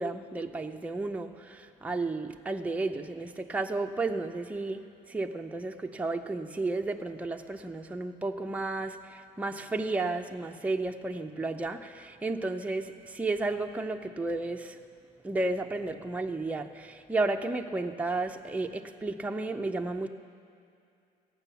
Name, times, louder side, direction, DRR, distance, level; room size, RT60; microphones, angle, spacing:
voice 1, 0.0-4.8 5.1-14.8 15.2-20.1, right 3 dB, 10° right, 4 dB, 0.6 m, -32 dB
15.0 x 9.1 x 7.0 m, 2.5 s
cardioid pair, 110°, 17 cm